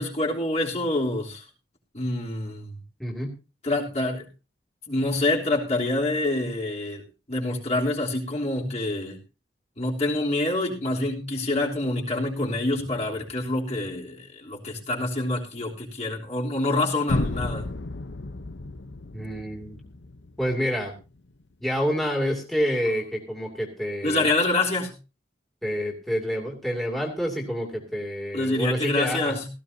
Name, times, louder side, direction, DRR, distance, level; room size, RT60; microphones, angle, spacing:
voice 1, 0.0-1.4 1.9-2.7 3.6-4.3 4.9-7.0 7.3-9.2 9.8-17.6 24.0-24.9 28.3-29.5, left 2 dB, 35° left, -2 dB, 3.3 m, -26 dB
voice 2, 3.0-3.3 19.1-19.8 20.4-20.9 21.6-24.3 25.6-29.4, equal, ahead, -2 dB, 2.6 m, -28 dB
sound 1, 17.1-21.0, left 2 dB, 75° left, 0.8 m, -33 dB
17.0 x 14.5 x 2.7 m, 0.31 s
head